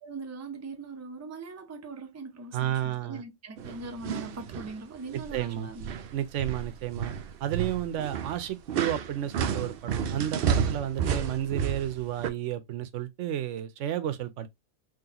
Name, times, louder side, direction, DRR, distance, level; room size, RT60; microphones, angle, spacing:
voice 1, 0.0-5.9, right 3 dB, 20° right, 0.5 m, -41 dB
voice 2, 2.5-3.2 5.1-5.7 6.1-7.1 7.4-14.5, right 11 dB, 85° right, 0.9 m, -32 dB
sound 1, 3.6-4.7 5.1-5.5 5.8-12.3, right 7 dB, 60° right, 0.7 m, -31 dB
3.9 x 3.1 x 2.8 m
omnidirectional pair, 1.2 m